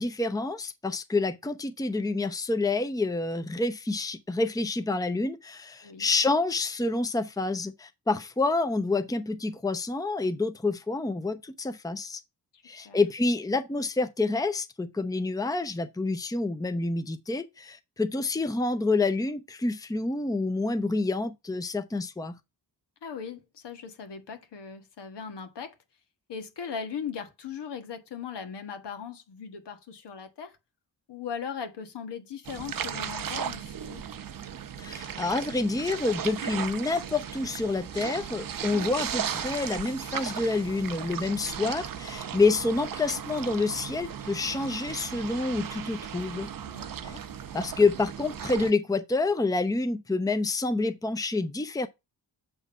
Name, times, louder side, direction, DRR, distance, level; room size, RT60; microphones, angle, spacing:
voice 1, 0.0-12.2 12.6-22.4 34.8-46.5 47.0-47.2 47.5-51.9, left 3 dB, 10° left, 0.7 m, -28 dB
voice 2, 12.5-13.0 23.0-25.8 26.3-30.6 31.1-34.0 46.7-47.2, left 6 dB, 70° left, 1.5 m, -39 dB
sound 1, 32.4-48.7, right 8 dB, 50° right, 0.8 m, -36 dB
7.2 x 3.6 x 5.5 m
cardioid pair, 70°, 43 cm